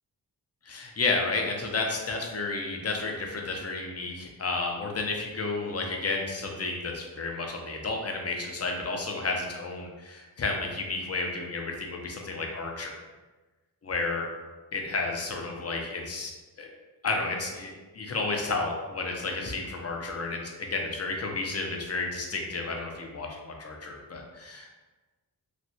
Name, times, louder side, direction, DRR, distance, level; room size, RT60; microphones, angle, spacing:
voice 1, 0.6-12.9 13.8-14.3 14.7-16.3 16.6-16.7 17.0-24.8, left 3 dB, 40° left, 1 dB, 0.6 m, -32 dB
3.2 x 2.6 x 2.7 m, 1.2 s
cardioid pair, 60°, 40 cm